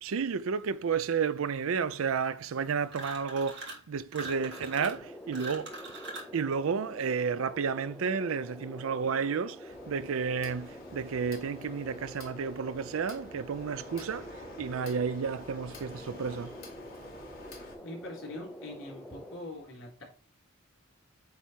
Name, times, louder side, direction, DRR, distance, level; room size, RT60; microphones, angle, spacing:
voice 1, 0.0-5.7 6.3-16.6, right 6 dB, 80° right, 0.4 m, -32 dB
sound 1, 2.9-3.8 4.1-6.4, right 2 dB, 55° right, 1.8 m, -42 dB
sound 2, 4.2-19.4, left 1 dB, 5° left, 0.5 m, -47 dB
sound 3, 9.7-17.7, left 2 dB, 45° left, 1.9 m, -50 dB
voice 2, 17.8-20.0, left 1 dB, 65° left, 3.7 m, -43 dB
8.6 x 3.5 x 4.5 m
head